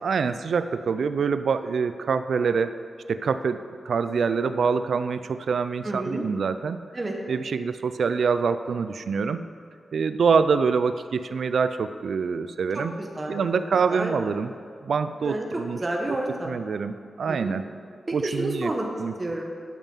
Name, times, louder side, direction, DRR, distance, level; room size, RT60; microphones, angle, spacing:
voice 1, 0.0-2.8 3.1-6.8 7.3-9.4 9.9-12.9 13.3-14.5 14.8-15.8 16.3-17.6 18.1-18.7 19.0-19.1, right 5 dB, 80° right, 11 dB, 0.4 m, -25 dB
voice 2, 5.8-6.2 6.9-7.1 12.7-13.3 13.9-14.1 15.2-16.5 17.3-17.5 18.2-18.9 19.2-19.5, right 1 dB, 35° right, 0 dB, 1.4 m, -30 dB
12.0 x 5.5 x 5.5 m, 2.3 s
cardioid pair, 70°, 0 cm